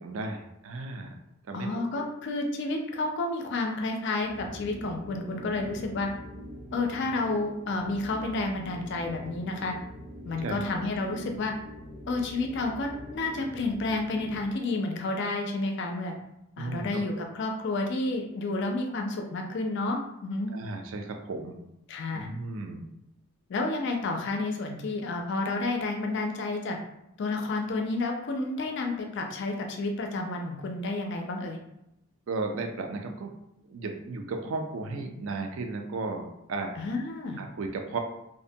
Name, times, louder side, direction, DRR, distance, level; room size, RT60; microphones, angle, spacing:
voice 1, 0.0-1.1 1.5-1.7 10.4-10.7 16.6-17.2 20.5-21.6 22.1-22.9 32.3-33.3 33.6-36.8 37.4-38.0, right 3 dB, 60° right, 4 dB, 0.4 m, -35 dB
voice 2, 1.5-6.1 6.7-9.8 10.2-11.5 12.1-16.1 16.6-20.5 21.9-22.3 23.5-26.8 27.2-31.6 36.8-37.4, left 2 dB, 50° left, 3 dB, 0.4 m, -30 dB
sound 1, 4.2-14.6, equal, 90° right, 0.8 m, -43 dB
2.5 x 2.1 x 2.6 m, 0.83 s
head